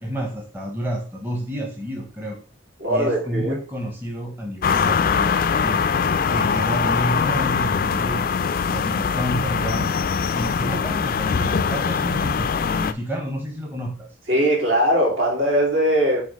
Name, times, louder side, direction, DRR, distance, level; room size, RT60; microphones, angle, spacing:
voice 1, 0.0-2.4 2.9-5.8 6.3-8.3 8.7-10.0 10.3-14.1, equal, 10° right, 1 dB, 0.8 m, -29 dB
voice 2, 2.8-3.6 14.3-16.2, equal, 65° right, -3 dB, 3.2 m, -20 dB
sound 1, 4.6-12.9, left 6 dB, 45° left, 0.3 m, -22 dB
7.7 x 2.9 x 5.1 m, 0.37 s
head